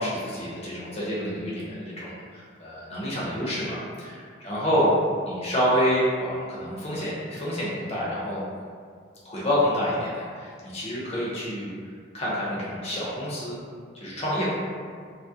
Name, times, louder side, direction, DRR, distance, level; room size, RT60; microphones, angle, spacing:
voice 1, 0.0-4.9 5.3-8.4 9.2-11.7 12.1-13.6 13.9-14.6, equal, 30° left, -7 dB, 0.5 m, -28 dB
2.3 x 2.0 x 2.7 m, 2.1 s
head